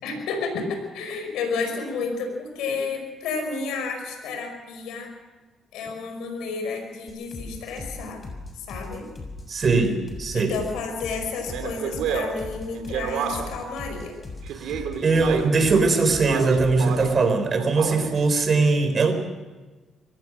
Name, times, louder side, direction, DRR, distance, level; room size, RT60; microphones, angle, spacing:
voice 1, 0.0-5.1 5.7-8.2 8.5-9.1 10.3-14.1, left 4 dB, 90° left, 4 dB, 5.4 m, -31 dB
sound 1, 7.1-17.0, left 2 dB, 35° left, 7.0 m, -38 dB
voice 2, 9.5-10.5 14.6-19.1, right 4 dB, 45° right, 8 dB, 4.2 m, -21 dB
Speech, 11.5-13.7 14.5-15.6 16.1-17.2 17.6-18.2, right 7 dB, 85° right, 2.7 m, -30 dB
23.5 x 18.0 x 6.1 m, 1.3 s
cardioid pair, 90°, 0 cm